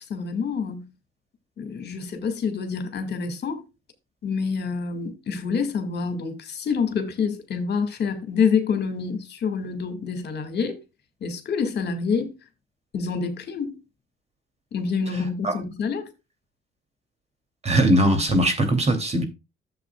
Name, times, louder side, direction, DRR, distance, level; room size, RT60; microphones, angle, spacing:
voice 1, 0.1-0.9 1.6-3.6 4.2-10.8 11.2-12.3 12.9-13.8 14.7-16.1, left 5 dB, 55° left, 2.1 m, -27 dB
voice 2, 17.6-19.2, right 1 dB, 35° right, 2.8 m, -20 dB
11.5 x 7.6 x 2.3 m
cardioid pair, 90°, 20 cm